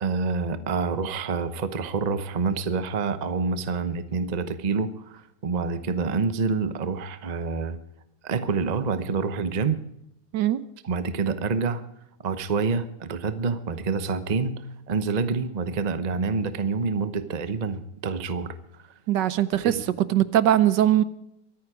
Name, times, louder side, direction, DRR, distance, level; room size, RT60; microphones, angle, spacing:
voice 1, 0.0-7.8 8.2-9.8 10.8-11.8 12.2-14.6 14.9-18.6 19.6-19.8, right 4 dB, 50° right, 12 dB, 0.4 m, -27 dB
voice 2, 19.1-19.8 20.1-21.0, right 12 dB, 70° right, 15 dB, 1.2 m, -20 dB
24.0 x 9.6 x 4.9 m, 0.79 s
omnidirectional pair, 2.3 m